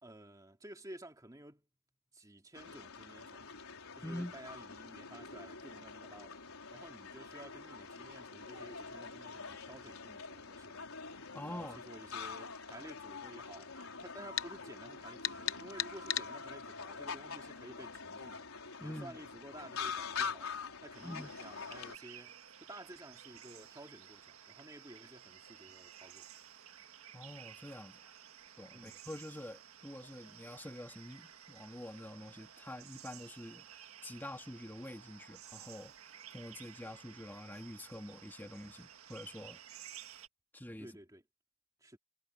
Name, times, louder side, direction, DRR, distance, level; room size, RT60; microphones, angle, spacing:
voice 1, 0.0-1.7 2.1-3.5 3.9-10.8 11.5-13.7 14.0-18.5 18.8-20.5 20.8-26.3 28.7-29.0 40.8-41.2 41.8-42.0, right 1 dB, 15° right, 2.4 m, -53 dB
sound 1, 2.5-22.0, left 5 dB, 75° left, 4.2 m, -45 dB
voice 2, 4.0-4.3 11.3-11.8 18.8-19.2 21.0-21.3 27.1-28.1 28.6-35.9 36.3-39.6 40.5-40.9, left 1 dB, 10° left, 2.3 m, -46 dB
sound 2, 14.4-14.5 15.2-16.3, left 12 dB, 60° left, 0.8 m, -34 dB
sound 3, 20.9-40.3, right 9 dB, 80° right, 1.6 m, -54 dB
head